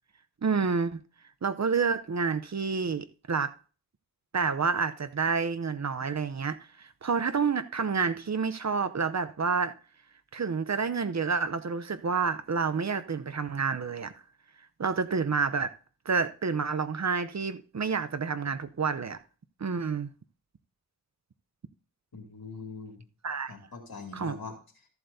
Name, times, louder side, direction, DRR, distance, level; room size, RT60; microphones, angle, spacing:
voice 1, 0.4-1.0 1.4-3.5 4.3-9.7 10.3-14.1 14.8-15.7 16.0-19.2 19.6-20.1 23.2-23.5 24.1-24.3, right 5 dB, 50° right, 0.7 m, -29 dB
voice 2, 22.1-23.1 23.5-24.9, left 4 dB, 80° left, 2.6 m, -43 dB
14.0 x 7.9 x 2.7 m
cardioid pair, 45°, 36 cm